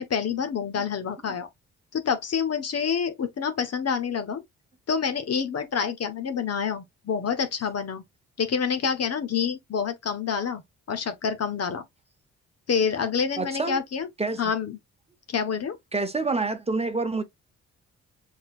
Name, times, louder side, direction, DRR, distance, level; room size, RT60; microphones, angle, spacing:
voice 1, 0.0-1.5 1.9-4.4 4.9-8.0 8.4-10.6 10.9-11.8 12.7-14.1 14.4-14.8 15.3-15.8, left 6 dB, 50° left, 1.2 m, -27 dB
voice 2, 13.4-13.8 14.2-14.4 15.9-17.2, right 3 dB, 20° right, 1.0 m, -27 dB
5.6 x 3.8 x 2.5 m
supercardioid pair, 60°, 31 cm